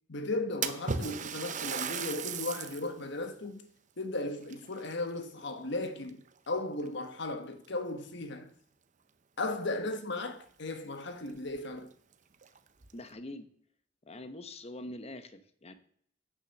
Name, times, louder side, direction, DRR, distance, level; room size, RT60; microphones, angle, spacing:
voice 1, 0.1-3.7 4.0-6.2 6.5-8.5 9.4-11.9, left 2 dB, 65° left, 1.2 m, -36 dB
Splash splatter, 0.6-2.9 3.4-3.5 4.4-5.5 5.8-6.3 7.1-7.2 7.7-7.8 9.9-10.0 10.3-10.4 11.0-11.1 11.5-11.6 12.3-12.9, right 6 dB, 40° right, 0.7 m, -36 dB
voice 2, 12.9-13.5 14.1-15.7, left 1 dB, 35° left, 0.9 m, -44 dB
8.8 x 6.4 x 6.5 m
head